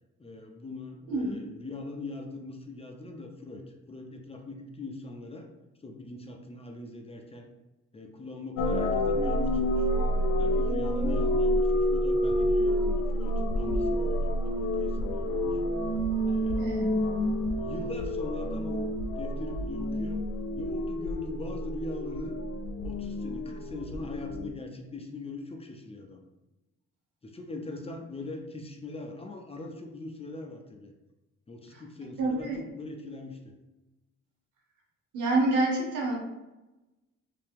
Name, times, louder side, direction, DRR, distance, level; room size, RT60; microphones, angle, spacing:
voice 1, 0.2-5.5 5.8-7.5 7.9-9.9 10.4-15.6 16.2-16.8 17.5-18.9 19.2-20.2 20.6-22.4 22.8-26.2 27.2-30.9 31.5-33.5, left 2 dB, 20° left, 3 dB, 0.5 m, -41 dB
sound 1, 8.6-24.5, equal, 65° left, 0.6 m, -28 dB
voice 2, 32.2-32.6 35.1-36.2, right 2 dB, 90° right, -2 dB, 1.2 m, -27 dB
3.3 x 2.9 x 3.4 m, 1.0 s
cardioid pair, 90°, 30 cm